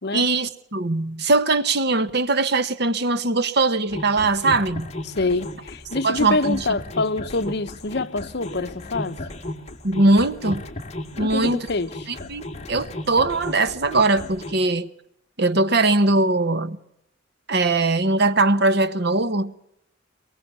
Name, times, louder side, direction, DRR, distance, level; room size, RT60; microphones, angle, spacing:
voice 1, 0.1-4.9 6.0-6.6 9.8-10.6 11.2-11.7 12.1-14.9 15.4-16.8 17.5-19.5, right 2 dB, 60° right, 1.2 m, -21 dB
sound 1, 3.9-14.5, left 1 dB, 35° left, 2.3 m, -35 dB
voice 2, 5.1-9.2 11.2-12.1, left 3 dB, 60° left, 1.1 m, -26 dB
23.5 x 22.0 x 7.0 m
head